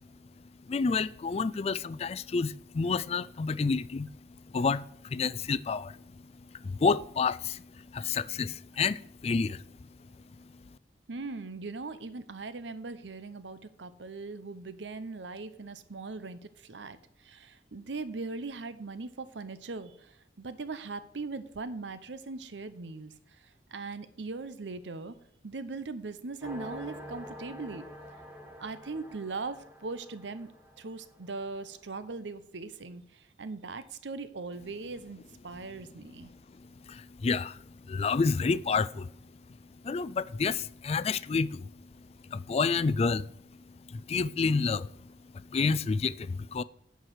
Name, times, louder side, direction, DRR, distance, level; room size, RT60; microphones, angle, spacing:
voice 1, 0.7-4.1 4.5-6.0 6.5-7.6 7.9-9.6 36.9-39.1 39.8-41.7 42.3-43.3 43.9-44.9 45.3-46.6, left 4 dB, 35° left, 0.3 m, -29 dB
voice 2, 11.1-25.1 25.4-27.9 28.6-30.5 30.8-36.3, right 3 dB, 85° right, 0.8 m, -40 dB
sound 1, 26.4-31.8, left 1 dB, 10° right, 1.5 m, -47 dB
10.0 x 4.8 x 8.0 m
head